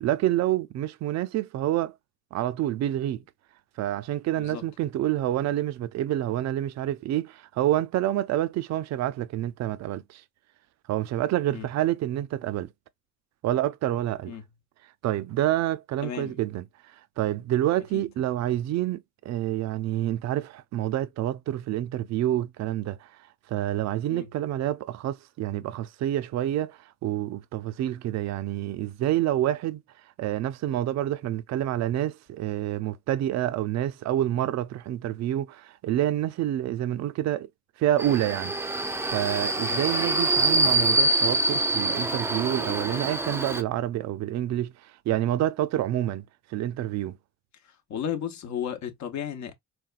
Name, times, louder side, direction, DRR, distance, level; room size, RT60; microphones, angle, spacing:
voice 1, 0.0-1.9 2.3-3.2 3.8-10.2 10.9-12.7 13.4-14.4 15.0-16.6 17.2-23.1 23.5-29.8 30.2-37.5 37.8-38.5 39.1-46.2 46.5-47.2, right 13 dB, 60° right, 0.4 m, -28 dB
voice 2, 4.3-4.7 11.5-11.7 14.3-14.5 16.0-16.4 17.9-18.0 24.1-24.3 39.6-39.8 47.9-49.5, left 9 dB, 70° left, 0.8 m, -34 dB
Subway metro underground, 38.0-43.6, right 2 dB, 10° right, 0.5 m, -25 dB
4.1 x 2.2 x 2.4 m
cardioid pair, 90°, 30 cm